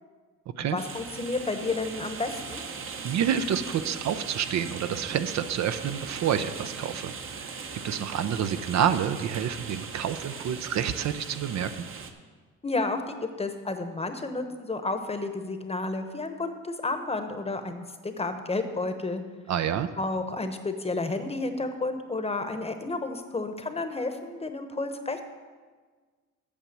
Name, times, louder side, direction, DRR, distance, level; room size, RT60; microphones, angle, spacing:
voice 1, 0.7-2.6 12.6-19.2 20.0-25.2, left 3 dB, 20° left, 7 dB, 0.9 m, -31 dB
sound 1, 0.8-12.1, right 5 dB, 45° right, 0.9 m, -39 dB
voice 2, 3.0-11.7 19.5-19.9, right 8 dB, 65° right, 11 dB, 0.6 m, -28 dB
8.6 x 6.0 x 7.4 m, 1.4 s
cardioid pair, 90°, 30 cm